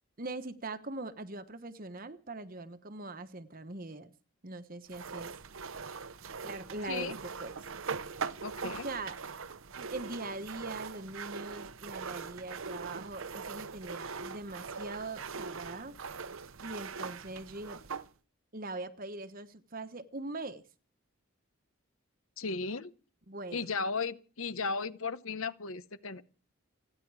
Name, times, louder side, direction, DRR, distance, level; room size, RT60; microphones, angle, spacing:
voice 1, 0.2-4.1 4.4-5.4 6.4-7.5 8.8-9.2 9.8-16.0 16.6-17.8 18.5-20.6 23.3-23.7, right 2 dB, 40° right, 1.1 m, -42 dB
sound 1, 4.9-18.1, right 5 dB, 65° right, 0.8 m, -41 dB
voice 2, 8.4-8.9 22.4-22.9 23.5-26.2, left 4 dB, 65° left, 1.0 m, -35 dB
29.5 x 10.0 x 4.8 m
head